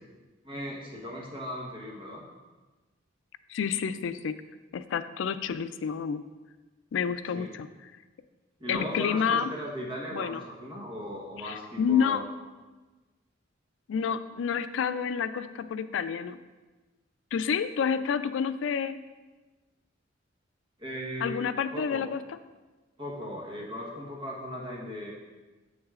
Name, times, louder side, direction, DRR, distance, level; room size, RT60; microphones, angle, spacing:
voice 1, 0.4-2.2 7.3-7.5 8.6-12.2 20.8-21.4 21.7-22.1 23.0-25.1, equal, 25° right, -3 dB, 1.1 m, -37 dB
voice 2, 3.5-4.4 4.7-6.2 6.9-7.9 8.7-9.5 10.1-10.4 11.4-12.2 13.9-16.4 17.3-19.0 21.2-22.2, left 7 dB, 75° left, 13 dB, 0.3 m, -29 dB
8.0 x 6.3 x 2.4 m, 1.2 s
head